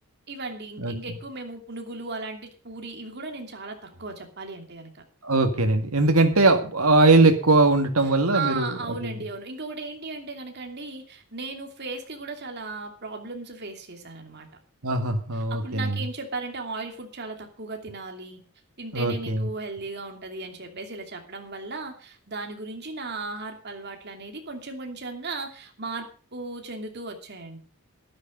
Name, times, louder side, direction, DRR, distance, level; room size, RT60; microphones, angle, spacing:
voice 1, 0.3-5.0 8.0-14.5 15.3-18.4 18.8-27.6, right 3 dB, 50° right, 4 dB, 2.8 m, -36 dB
voice 2, 5.2-8.7 9.0-9.2 14.8-16.0 18.9-19.4, right 2 dB, 85° right, 6 dB, 2.0 m, -20 dB
13.0 x 11.5 x 5.2 m, 0.37 s
head